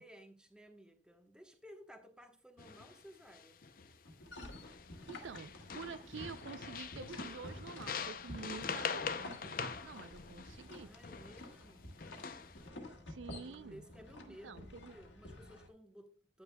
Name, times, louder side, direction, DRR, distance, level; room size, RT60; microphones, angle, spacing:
voice 1, 0.0-3.6 10.7-11.9 13.3-16.4, equal, 5° right, 1.1 m, -57 dB
sound 1, 2.6-3.0 3.3-4.0 4.5-5.1 5.3-11.5 12.0-12.6, left 6 dB, 50° left, 0.6 m, -43 dB
sound 2, 4.1-15.7, left 1 dB, 80° left, 1.7 m, -51 dB
voice 2, 5.1-10.9 13.1-13.8 14.3-14.9, right 5 dB, 85° right, 0.4 m, -48 dB
10.0 x 9.4 x 2.3 m
head